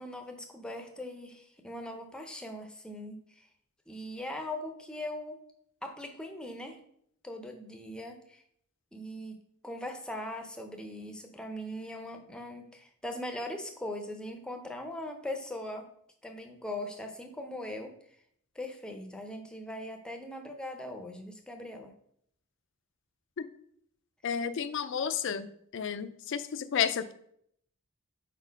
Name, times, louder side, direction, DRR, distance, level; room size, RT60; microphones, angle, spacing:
voice 1, 0.0-3.4 3.9-5.4 5.8-6.8 7.2-8.4 8.9-15.9 16.2-17.9 18.6-21.9, left 1 dB, 5° left, 3 dB, 0.6 m, -40 dB
voice 2, 24.2-25.5 25.7-27.1, left 7 dB, 60° left, 12 dB, 0.4 m, -31 dB
4.4 x 4.2 x 5.1 m, 0.69 s
head